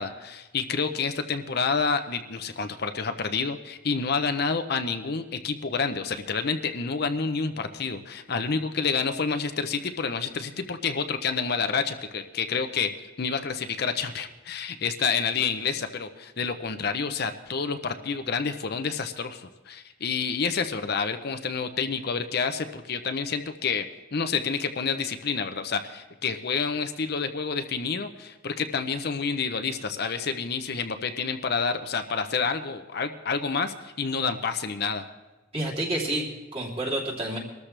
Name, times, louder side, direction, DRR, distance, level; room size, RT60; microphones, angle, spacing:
voice 1, 0.0-12.9 13.2-23.8 24.1-35.1, left 5 dB, 55° left, 8 dB, 0.7 m, -29 dB
voice 2, 35.5-37.4, right 1 dB, 30° right, -2 dB, 3.1 m, -29 dB
23.0 x 13.0 x 3.4 m, 1.2 s
head